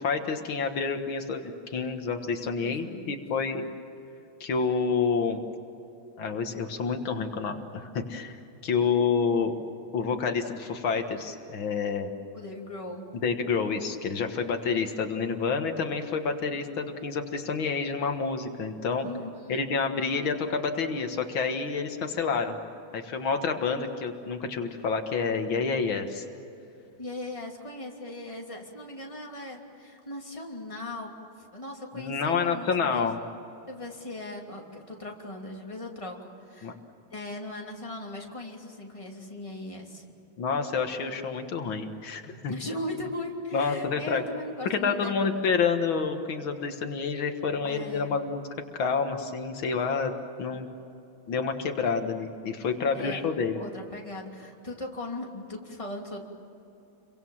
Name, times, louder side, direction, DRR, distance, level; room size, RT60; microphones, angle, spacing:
voice 1, 0.0-3.6 4.4-5.4 6.2-9.6 9.9-12.1 13.2-19.1 19.5-22.6 22.9-26.2 31.9-33.2 36.6-36.7 40.4-42.5 43.5-44.2 44.7-48.4 48.7-50.1 50.4-50.7 51.3-53.6, left 5 dB, 80° left, 5 dB, 2.3 m, -28 dB
voice 2, 2.6-3.2 8.7-9.0 12.3-13.1 19.0-19.6 27.0-31.1 31.5-33.1 33.7-36.8 37.1-40.1 42.5-45.3 47.6-48.2 52.9-53.3 53.5-56.2, left 1 dB, 15° left, 0 dB, 2.9 m, -38 dB
29.5 x 23.5 x 7.3 m, 2.8 s
omnidirectional pair, 2.1 m